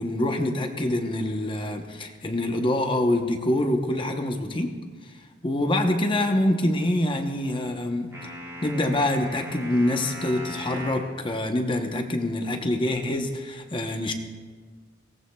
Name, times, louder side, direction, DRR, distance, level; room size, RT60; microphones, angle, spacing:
voice 1, 0.0-4.8 5.0-5.1 5.4-8.1 8.6-14.1, left 1 dB, 25° left, 5 dB, 0.8 m, -25 dB
sound 1, 8.1-11.1, equal, 15° right, 3.2 m, -38 dB
22.5 x 17.5 x 2.3 m, 1.5 s
head